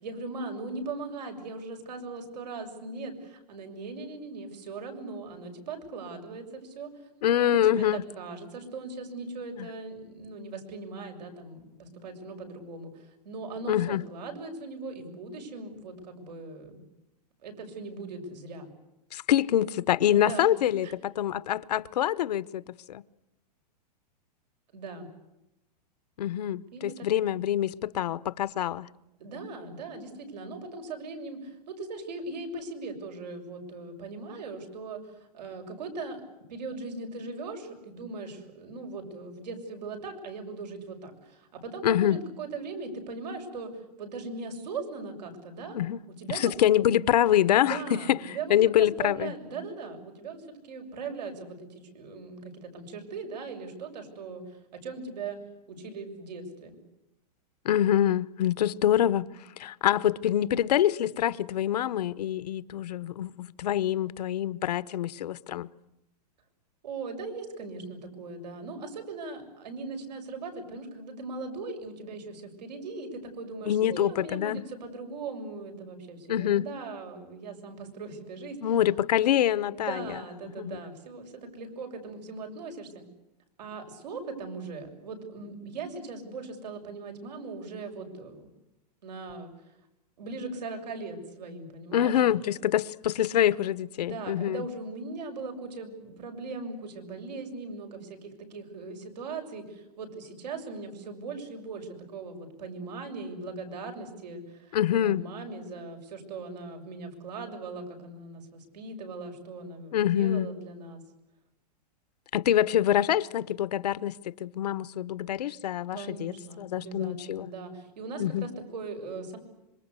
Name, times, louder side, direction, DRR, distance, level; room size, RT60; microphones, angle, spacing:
voice 1, 0.0-6.9 7.4-16.8 17.4-18.7 20.1-20.5 20.8-20.9 24.7-25.1 26.7-26.9 29.2-36.2 36.5-43.7 44.0-45.8 46.1-46.5 47.5-55.4 55.7-56.8 66.8-78.8 79.7-83.0 83.6-88.5 89.0-89.5 90.2-92.2 94.0-111.0 115.9-119.4, right 3 dB, 85° right, 7.0 m, -39 dB
voice 2, 7.2-8.0 9.6-9.7 13.7-14.0 19.1-20.9 21.2-22.6 22.9-23.0 26.2-28.9 41.8-42.2 45.7-46.0 46.3-48.2 48.5-49.3 57.6-59.3 59.6-65.7 73.7-74.6 76.3-76.6 78.6-80.1 80.6-80.8 91.9-94.6 104.7-105.2 109.9-110.5 112.3-117.5 118.2-118.5, left 11 dB, 75° left, 1.0 m, -25 dB
26.5 x 24.0 x 8.3 m
supercardioid pair, 170°, 21 cm